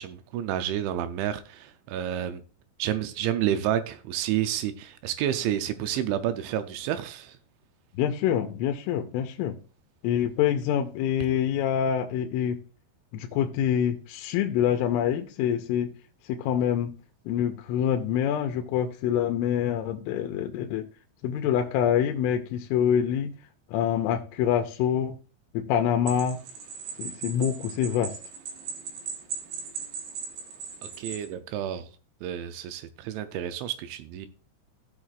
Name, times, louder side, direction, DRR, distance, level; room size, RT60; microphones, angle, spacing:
voice 1, 0.0-2.4 2.8-7.4 31.0-31.9 32.2-34.3, right 11 dB, 80° right, 2.8 m, -30 dB
voice 2, 8.0-9.6 10.0-12.6 13.1-15.9 16.3-16.9 17.3-20.8 21.2-23.3 23.7-25.2 25.5-26.4 27.0-28.1, left 9 dB, 90° left, 3.2 m, -26 dB
sound 1, 26.1-31.3, right 5 dB, 65° right, 3.3 m, -38 dB
16.0 x 6.4 x 2.4 m
omnidirectional pair, 5.7 m